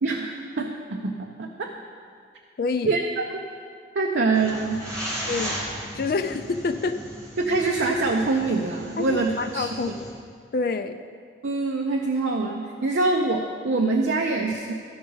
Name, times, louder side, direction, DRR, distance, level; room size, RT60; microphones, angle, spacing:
voice 1, 0.0-1.7 2.9-3.4 3.9-4.8 7.4-9.9 11.4-14.7, right 3 dB, 80° right, 1 dB, 0.6 m, -25 dB
voice 2, 2.6-3.0 5.3-5.6 6.0-7.0 9.0-10.1 10.5-11.0, left 4 dB, 55° left, 8 dB, 0.4 m, -27 dB
sound 1, 4.3-10.1, equal, 15° right, 1.8 m, -36 dB
13.5 x 4.7 x 5.5 m, 2.2 s
head